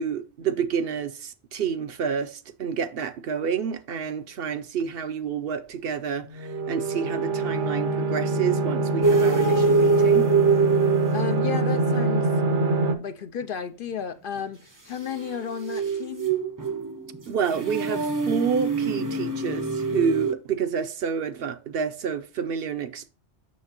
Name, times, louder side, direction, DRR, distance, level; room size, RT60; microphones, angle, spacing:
voice 1, 0.0-10.3 17.3-23.1, right 6 dB, 65° right, 0.8 m, -29 dB
sound 1, 6.3-13.0, right 3 dB, 85° right, 1.2 m, -25 dB
sound 2, 9.0-11.7 15.1-20.3, right 4 dB, 25° right, 0.5 m, -24 dB
voice 2, 11.1-12.3 13.0-16.3, left 8 dB, 60° left, 0.7 m, -33 dB
7.3 x 6.3 x 2.9 m
omnidirectional pair, 1.2 m